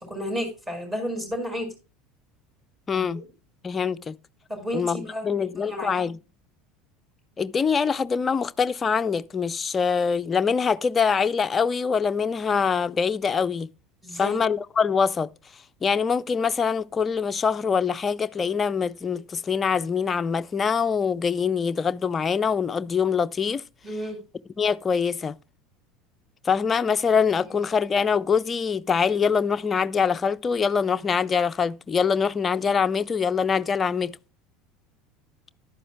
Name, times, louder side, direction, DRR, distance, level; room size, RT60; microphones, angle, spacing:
voice 1, 0.1-1.7 2.9-3.3 4.5-5.3 5.6-5.9 14.0-14.4 23.8-24.2 27.5-27.6, equal, 15° right, 6.0 m, -32 dB
voice 2, 2.9-3.2 3.6-4.2 4.7-6.2 7.4-13.7 14.2-15.3 15.8-23.6 24.6-25.3 26.4-34.1, left 6 dB, 25° left, 0.5 m, -24 dB
14.0 x 11.5 x 2.2 m
figure-of-eight pair, 70°, 0 cm